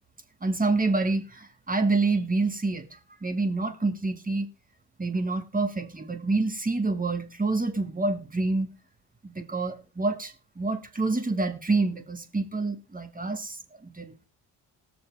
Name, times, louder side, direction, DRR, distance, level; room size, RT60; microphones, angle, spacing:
voice 1, 0.4-4.5 5.0-8.7 9.2-14.2, right 3 dB, 20° right, 2.0 m, -27 dB
19.5 x 6.9 x 3.5 m
supercardioid pair, 60°, 46 cm